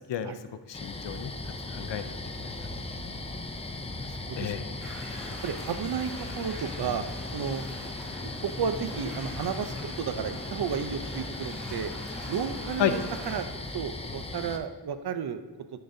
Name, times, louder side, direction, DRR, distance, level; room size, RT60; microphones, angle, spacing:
voice 1, 0.7-1.3 1.7-2.6 4.4-4.6 12.8-12.9, left 10 dB, 80° left, 10 dB, 0.5 m, -31 dB
sound 1, 0.7-14.6, left 2 dB, 15° left, 0.3 m, -37 dB
voice 2, 3.9-4.5 4.8-4.9 5.4-7.0 7.3-7.6 8.2-11.9 12.3-13.0 13.3-13.5 13.7-15.4, right 7 dB, 65° right, 10 dB, 0.5 m, -33 dB
sound 2, 4.8-13.5, equal, ahead, 1.8 m, -45 dB
10.0 x 3.9 x 2.6 m, 1.3 s
wide cardioid pair, 130°, 43 cm